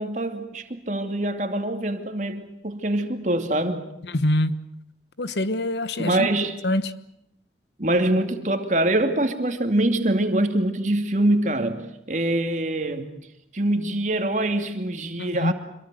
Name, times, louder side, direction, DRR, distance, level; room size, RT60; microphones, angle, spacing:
voice 1, 0.0-3.9 6.0-6.6 7.8-11.8 12.1-13.1 13.5-15.5, right 1 dB, 45° right, 2.6 m, -24 dB
voice 2, 4.1-4.6 5.2-6.3 6.6-6.9 15.2-15.5, left 1 dB, 75° left, 1.2 m, -24 dB
26.5 x 22.5 x 7.7 m
head